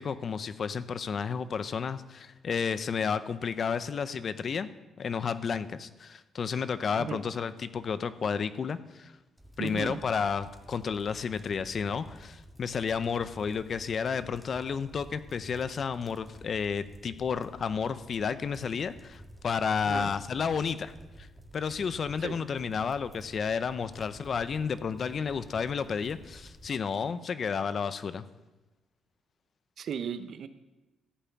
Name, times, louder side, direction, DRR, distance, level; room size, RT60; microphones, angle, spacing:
voice 1, 0.0-4.7 5.0-9.1 9.6-21.3 21.5-28.2, left 6 dB, 50° left, 13 dB, 0.7 m, -31 dB
sound 1, 9.4-26.7, equal, 5° right, 1.8 m, -51 dB
voice 2, 9.6-10.0 19.9-20.1 22.2-22.4 29.8-30.5, right 7 dB, 60° right, 12 dB, 0.8 m, -35 dB
14.5 x 5.7 x 8.6 m, 1.1 s
cardioid pair, 90°, 0 cm